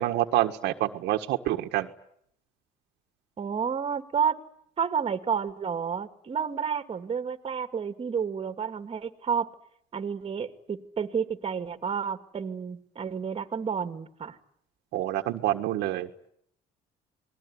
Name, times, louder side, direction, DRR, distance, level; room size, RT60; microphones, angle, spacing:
voice 1, 0.0-1.9 14.9-16.1, right 14 dB, 85° right, 6 dB, 1.6 m, -27 dB
voice 2, 3.4-4.4 4.8-9.5 9.9-14.4, right 7 dB, 35° right, 9 dB, 2.3 m, -30 dB
27.5 x 20.5 x 9.7 m, 0.71 s
cardioid pair, 110°, 17 cm